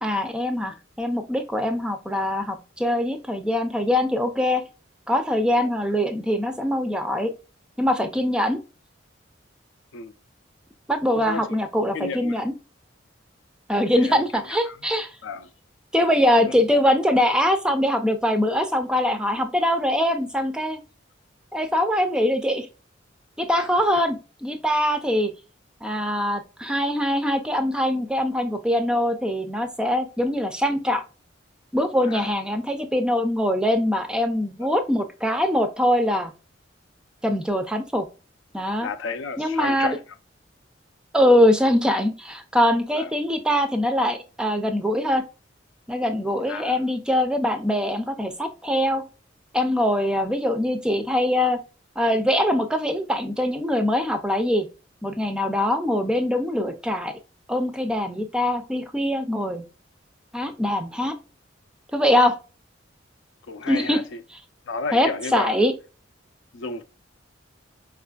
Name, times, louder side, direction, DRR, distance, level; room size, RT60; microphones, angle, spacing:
voice 1, 0.0-4.6 5.1-7.3 7.8-8.6 10.9-12.5 13.7-15.1 15.9-20.8 21.5-22.7 23.4-25.3 25.8-31.0 31.7-36.3 37.2-38.1 38.5-38.9 39.4-40.0 41.1-45.2 45.9-49.0 49.5-51.6 52.0-54.7 55.0-57.1 57.5-59.6 60.3-61.1 61.9-62.4 63.7-64.0 64.9-65.7, left 1 dB, 5° right, 0.3 m, -23 dB
voice 2, 11.1-11.6 11.9-12.4 14.0-14.8 15.2-15.5 16.4-16.5 23.6-23.7 32.0-32.3 38.8-40.0 42.9-43.1 46.5-46.8 63.5-64.2 64.7-65.5 66.5-66.8, left 4 dB, 80° left, 0.4 m, -32 dB
4.9 x 2.4 x 2.2 m
head